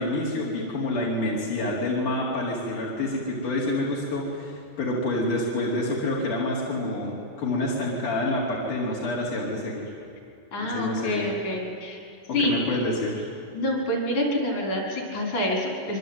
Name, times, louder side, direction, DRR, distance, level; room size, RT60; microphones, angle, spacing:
voice 1, 0.0-9.9 10.7-11.3 12.4-13.3, left 1 dB, 90° left, -5 dB, 5.6 m, -28 dB
voice 2, 10.5-12.0 12.3-12.6 13.5-16.0, left 1 dB, 70° left, 1 dB, 7.1 m, -27 dB
26.0 x 24.5 x 9.5 m, 2.6 s
omnidirectional pair, 3.5 m